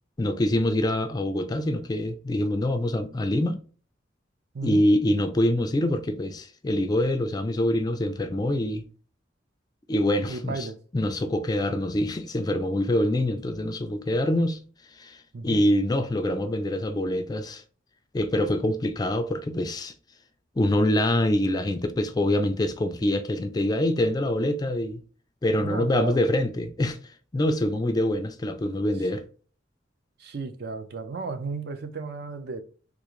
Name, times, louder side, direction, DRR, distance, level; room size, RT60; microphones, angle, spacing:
voice 1, 0.2-3.6 4.6-8.9 9.9-10.7 10.9-14.6 15.0-17.6 18.1-19.9 20.6-25.0 25.4-27.0 27.3-29.2, left 1 dB, 20° left, 0.3 m, -25 dB
voice 2, 10.3-10.8 15.3-15.6 25.6-26.2 30.2-32.6, right 4 dB, 55° right, 0.5 m, -34 dB
3.6 x 2.4 x 2.9 m
head